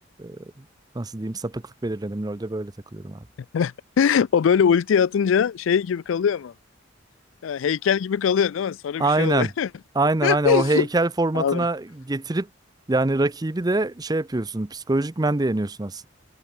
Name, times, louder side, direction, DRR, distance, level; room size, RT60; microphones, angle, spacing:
voice 1, 0.2-0.6 0.9-3.3 9.0-9.5 9.9-12.5 12.9-16.1, right 2 dB, 20° right, 0.6 m, -25 dB
voice 2, 3.5-6.5 7.4-9.7 10.2-10.9 11.3-11.6, left 7 dB, 90° left, 0.4 m, -21 dB
head